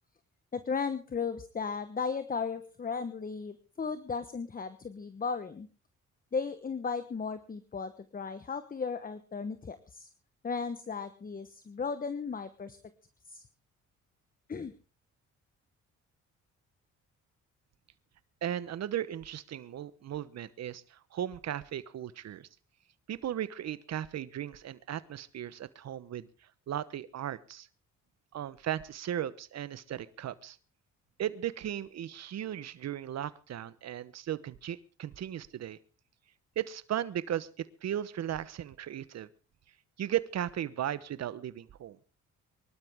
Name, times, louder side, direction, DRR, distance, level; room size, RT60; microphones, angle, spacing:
voice 1, 0.5-5.7 6.3-10.1 10.4-12.8 13.3-13.4 14.5-14.7, left 5 dB, 30° left, 12 dB, 1.1 m, -35 dB
voice 2, 18.4-22.5 23.1-26.3 26.7-27.7 28.3-30.6 31.2-35.8 36.6-39.3 40.0-42.0, right 11 dB, 60° right, 16 dB, 1.1 m, -36 dB
24.0 x 12.5 x 3.6 m, 0.35 s
cardioid pair, 90°, 30 cm